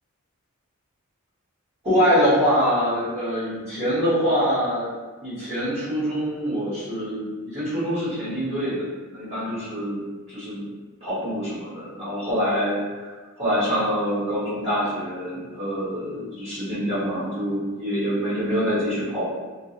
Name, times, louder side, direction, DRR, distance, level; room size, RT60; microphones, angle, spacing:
voice 1, 1.8-4.9 5.2-8.8 9.1-10.0 10.3-10.6 11.0-13.1 13.3-19.3, equal, 30° right, -13 dB, 1.1 m, -25 dB
2.5 x 2.3 x 2.8 m, 1.3 s
head